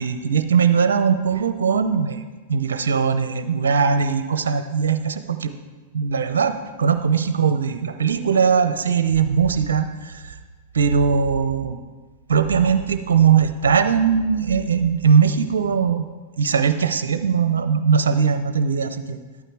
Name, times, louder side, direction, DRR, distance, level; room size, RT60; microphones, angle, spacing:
voice 1, 0.0-2.2 2.5-5.5 5.9-6.5 6.8-10.4 10.7-11.8 12.3-16.0 16.4-19.2, right 6 dB, 80° right, 9 dB, 0.7 m, -20 dB
12.0 x 9.1 x 4.7 m, 1.3 s
hypercardioid pair, 105°, 0 cm